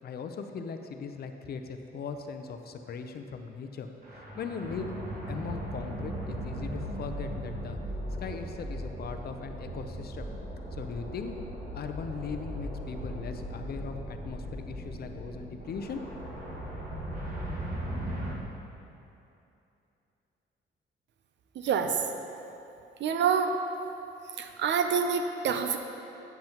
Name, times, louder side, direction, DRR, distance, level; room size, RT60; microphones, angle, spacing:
voice 1, 0.0-3.9 4.1-4.9 5.3-7.8 8.2-10.3 10.7-11.4 11.7-16.0, left 5 dB, 50° left, 6 dB, 0.6 m, -39 dB
sound 1, 4.0-18.3, equal, 45° right, 1.6 m, -38 dB
voice 2, 21.6-22.0 23.0-23.5 24.4-25.8, right 6 dB, 65° right, 7 dB, 0.6 m, -27 dB
9.1 x 7.7 x 3.0 m, 2.8 s
cardioid pair, 90°, 20 cm